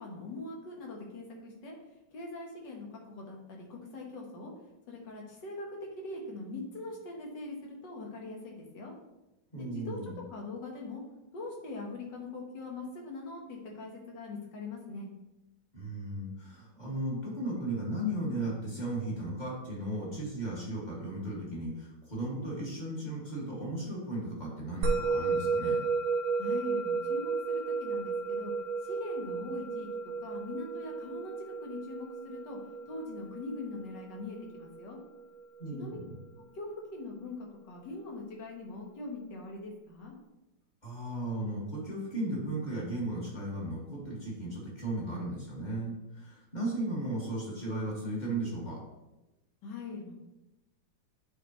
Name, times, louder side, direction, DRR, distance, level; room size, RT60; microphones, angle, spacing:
voice 1, 0.0-1.8 2.1-4.5 4.9-5.7 6.0-8.9 9.6-10.0 10.3-11.0 11.3-15.1 26.4-28.5 28.8-32.6 32.9-35.0 35.7-36.0 36.5-40.1 49.6-50.1, left 2 dB, 60° left, 0 dB, 2.0 m, -42 dB
voice 2, 9.5-10.2 15.7-25.8 35.6-36.2 40.8-48.8, right 1 dB, 20° left, -5 dB, 2.3 m, -36 dB
Musical instrument, 24.8-35.4, right 4 dB, 80° right, 1.6 m, -33 dB
9.4 x 4.8 x 3.2 m, 0.97 s
omnidirectional pair, 2.2 m